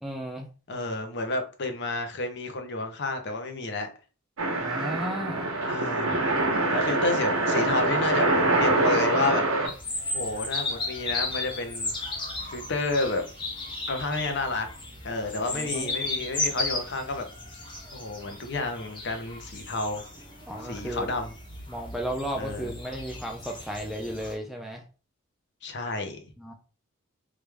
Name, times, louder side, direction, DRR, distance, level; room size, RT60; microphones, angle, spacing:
voice 1, 0.0-0.5 4.6-5.5 15.5-15.9 20.5-21.1 21.7-24.8 26.4-26.5, equal, ahead, 0.3 m, -34 dB
voice 2, 0.7-3.9 5.6-6.2 6.7-8.3 8.6-9.4 10.1-11.9 12.5-13.2 13.9-14.7 15.0-17.2 17.9-20.0 20.7-21.3 22.4-22.7 25.6-26.2, left 3 dB, 50° left, 0.7 m, -30 dB
sound 1, 4.4-9.7, right 2 dB, 65° right, 0.8 m, -24 dB
sound 2, 9.6-24.3, left 2 dB, 20° left, 0.9 m, -35 dB
3.2 x 2.5 x 3.3 m
head